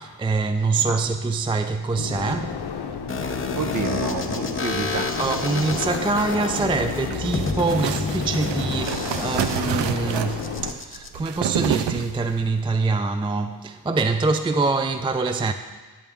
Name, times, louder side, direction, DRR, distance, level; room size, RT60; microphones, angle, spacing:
voice 1, 0.0-2.6 5.2-15.5, right 3 dB, 15° right, 0.3 m, -24 dB
sound 1, 1.9-10.7, left 6 dB, 60° left, 0.7 m, -32 dB
sound 2, 3.1-11.1, left 3 dB, 30° left, 0.7 m, -30 dB
voice 2, 3.5-5.8, right 4 dB, 45° right, 0.7 m, -30 dB
sound 3, 6.5-12.5, right 9 dB, 75° right, 0.5 m, -29 dB
8.8 x 6.8 x 3.6 m
cardioid pair, 50°, 44 cm